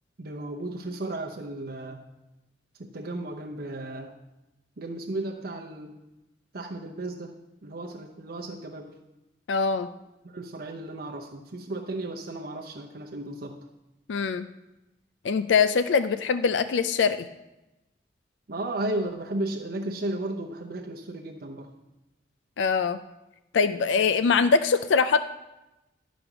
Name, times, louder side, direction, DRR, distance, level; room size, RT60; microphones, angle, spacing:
voice 1, 0.2-2.0 2.8-4.1 4.8-6.0 6.5-7.3 7.6-9.0 10.2-13.6 18.5-21.7, right 1 dB, 55° right, 2 dB, 0.7 m, -34 dB
voice 2, 9.5-9.9 14.1-14.5 15.2-17.2 22.6-23.0 23.5-25.2, left 5 dB, 80° left, 12 dB, 0.4 m, -23 dB
11.5 x 5.1 x 5.9 m, 0.98 s
head